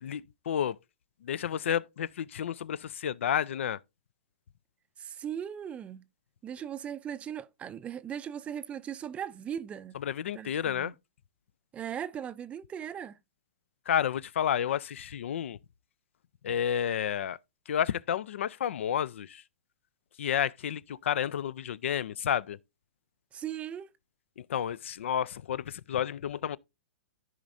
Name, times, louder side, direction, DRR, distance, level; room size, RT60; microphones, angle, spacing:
voice 1, 0.0-0.8 1.2-3.8 10.0-10.9 13.9-15.6 16.4-17.4 17.7-19.4 20.2-22.6 24.4-26.6, left 9 dB, 75° left, 0.4 m, -31 dB
voice 2, 5.0-6.0 6.4-10.0 10.3-10.9 11.7-13.2 23.3-23.9, right 9 dB, 20° right, 0.4 m, -38 dB
14.0 x 5.1 x 2.6 m
hypercardioid pair, 135°, 7 cm